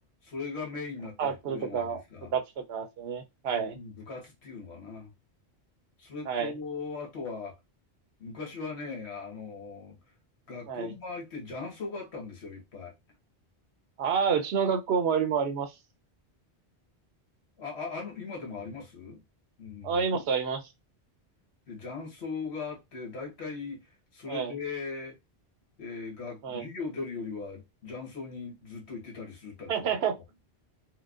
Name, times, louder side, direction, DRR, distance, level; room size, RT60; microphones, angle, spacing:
voice 1, 0.2-2.3 3.7-5.1 6.0-7.6 8.2-10.0 10.5-12.9 17.6-19.2 19.6-20.2 21.7-23.8 24.1-25.2 25.8-29.7, left 4 dB, 70° left, 1.4 m, -39 dB
voice 2, 1.2-2.0 2.3-3.8 6.3-6.5 10.7-10.9 14.0-15.7 19.8-20.6 24.3-24.5 26.4-26.7 29.7-30.2, right 6 dB, 70° right, 0.8 m, -29 dB
4.5 x 2.1 x 2.4 m
omnidirectional pair, 1.1 m